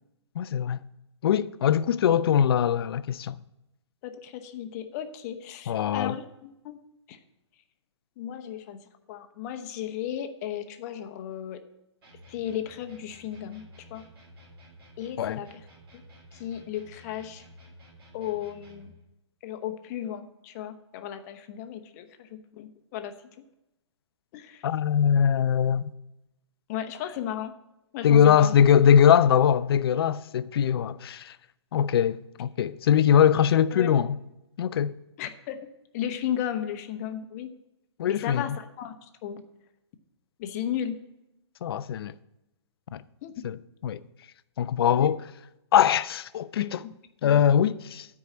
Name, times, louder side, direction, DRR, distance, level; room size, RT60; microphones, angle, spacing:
voice 1, 0.4-0.8 1.2-3.4 5.7-6.2 15.2-15.4 24.6-25.9 28.0-31.4 31.7-34.2 34.6-34.9 38.0-38.6 41.6-42.1 42.9-43.0 43.4-44.0 44.6-45.2 45.7-46.8 47.2-48.1, left 8 dB, 55° left, 0.4 m, -22 dB
voice 2, 4.0-6.8 7.1-7.2 8.2-8.8 9.1-11.6 12.3-13.6 13.9-14.0 15.0-15.5 16.3-17.4 18.1-18.9 19.4-23.1 24.3-24.6 26.7-27.5 27.9-28.6 33.7-33.9 35.2-35.6 35.9-37.5 38.1-38.9 39.2-39.4 40.4-41.0 43.2-43.3 44.9-45.1 47.2-47.3, left 10 dB, 35° left, 0.8 m, -34 dB
sound 1, 12.0-19.0, equal, 55° right, 3.5 m, -52 dB
9.5 x 4.8 x 7.2 m
hypercardioid pair, 130°, 15 cm